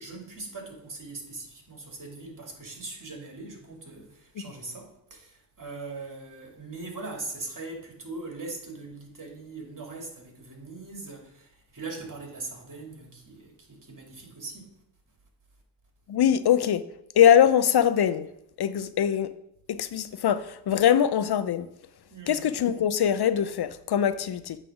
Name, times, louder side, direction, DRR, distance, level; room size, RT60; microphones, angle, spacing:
voice 1, 0.0-14.7 22.1-22.4, right 3 dB, 45° right, 2.5 m, -41 dB
voice 2, 16.1-16.8 17.2-18.3 18.6-19.3 19.7-21.7 22.3-24.6, left 9 dB, 65° left, 0.6 m, -22 dB
8.6 x 3.4 x 6.0 m
cardioid pair, 45°, 42 cm